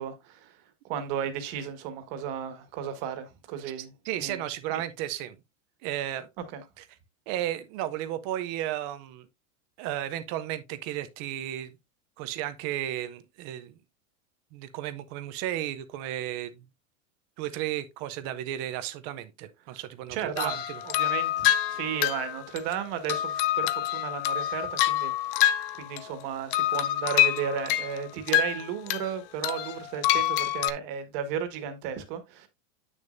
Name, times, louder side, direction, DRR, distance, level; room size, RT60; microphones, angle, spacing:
voice 1, 0.0-4.4 4.7-4.8 6.5-6.6 19.7-19.8 20.1-32.5, right 8 dB, 40° right, 1.6 m, -34 dB
voice 2, 4.0-5.4 5.8-6.3 6.8-6.9 7.3-9.3 9.8-11.8 12.2-13.7 14.5-16.6 17.4-20.8, right 12 dB, 25° right, 0.5 m, -34 dB
sound 1, 20.4-26.2 26.5-29.1 29.4-30.7, left 13 dB, 40° left, 0.6 m, -27 dB
8.7 x 6.5 x 2.5 m
supercardioid pair, 160°, 42 cm